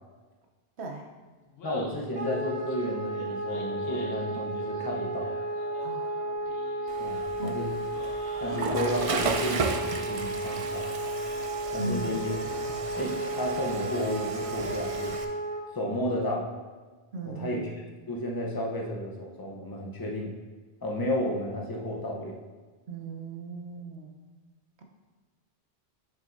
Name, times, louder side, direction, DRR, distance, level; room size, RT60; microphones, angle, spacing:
voice 1, 0.8-1.1 5.8-6.1 7.4-7.6 11.8-12.2 17.1-17.6 22.9-24.2, right 2 dB, 85° right, 3 dB, 1.1 m, -37 dB
Laughter, 1.4-12.5, left 2 dB, 65° left, 1.2 m, -50 dB
voice 2, 1.6-5.3 7.0-7.7 8.4-10.9 11.7-15.1 15.7-16.5 17.4-17.7 18.1-20.3 20.8-22.4, left 1 dB, 20° left, -1 dB, 0.8 m, -32 dB
Wind instrument woodwind instrument, 2.1-15.6, right 1 dB, 65° right, 1.3 m, -33 dB
Water / Toilet flush, 6.9-15.2, right 4 dB, 50° right, 0.4 m, -35 dB
7.4 x 6.3 x 2.6 m, 1.3 s
omnidirectional pair, 1.1 m